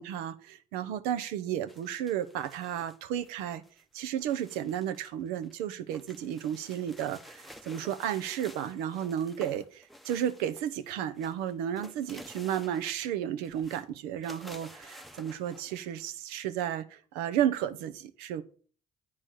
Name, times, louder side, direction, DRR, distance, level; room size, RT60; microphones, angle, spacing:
voice 1, 0.0-3.6 3.9-18.4, right 10 dB, 75° right, 0.7 m, -33 dB
sound 1, 1.7-5.1 5.4-10.9 11.1-13.1 13.4-13.9 14.2-16.1, equal, ahead, 0.8 m, -51 dB
8.5 x 4.3 x 6.3 m
hypercardioid pair, 55°, 16 cm